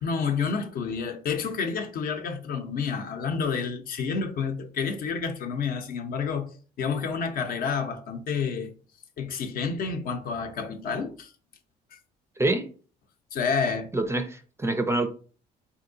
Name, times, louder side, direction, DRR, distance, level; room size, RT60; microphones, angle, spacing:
voice 1, 0.0-6.5 6.8-8.7 9.2-11.3 11.9-12.0 13.3-13.9, left 5 dB, 60° left, 0.7 m, -29 dB
voice 2, 13.9-15.1, right 2 dB, 15° right, 0.4 m, -26 dB
3.7 x 2.8 x 2.6 m
cardioid pair, 110°, 17 cm